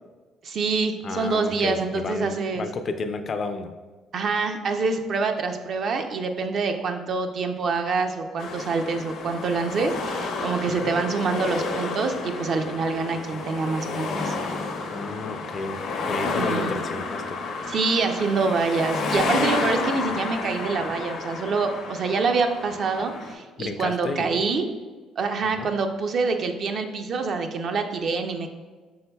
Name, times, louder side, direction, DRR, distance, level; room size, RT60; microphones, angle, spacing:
voice 1, 0.4-2.6 4.1-14.3 16.3-16.7 17.7-24.7 25.2-28.5, right 4 dB, 55° right, 5 dB, 0.4 m, -26 dB
voice 2, 1.0-3.7 10.7-11.0 14.9-15.8 16.1-17.4 23.6-24.4 25.6-25.7, left 3 dB, 45° left, 7 dB, 0.4 m, -32 dB
sound 1, 8.4-23.3, left 3 dB, 75° left, 0.7 m, -30 dB
5.5 x 3.8 x 2.2 m, 1.4 s
supercardioid pair, 80°, 0 cm